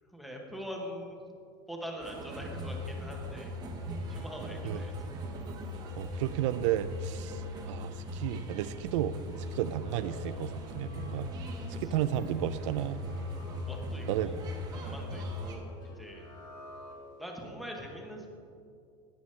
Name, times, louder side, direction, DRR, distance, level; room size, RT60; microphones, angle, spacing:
voice 1, 0.1-1.2 1.7-3.5 4.1-5.2 5.6-5.7 11.8-12.0 13.7-14.4 14.7-15.6 16.0-16.2 17.2-18.3, equal, ahead, 0 dB, 0.9 m, -43 dB
sound 1, 2.0-15.5, left 1 dB, 25° right, 1.0 m, -39 dB
voice 2, 6.0-9.2 9.5-11.3 11.7-13.0 14.1-14.3 14.7-14.9, right 12 dB, 70° right, 12 dB, 0.4 m, -33 dB
sound 2, 9.2-17.4, left 1 dB, 25° left, 1.1 m, -51 dB
17.5 x 7.0 x 3.2 m, 2.4 s
supercardioid pair, 175°, 16 cm